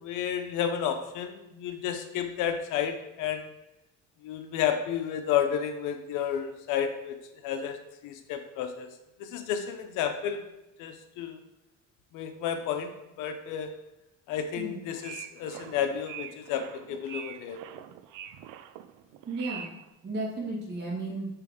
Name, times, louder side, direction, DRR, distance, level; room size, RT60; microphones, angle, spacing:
voice 1, 0.0-3.4 4.2-7.2 7.4-8.9 9.2-10.4 10.8-11.4 12.1-12.9 13.2-13.7 14.3-17.6, left 8 dB, 80° left, 7 dB, 0.8 m, -31 dB
sound 1, 14.8-19.9, right 10 dB, 75° right, 0.5 m, -44 dB
voice 2, 19.3-21.3, right 2 dB, 35° right, -5 dB, 2.3 m, -34 dB
7.0 x 3.4 x 4.9 m, 0.94 s
cardioid pair, 175°, 31 cm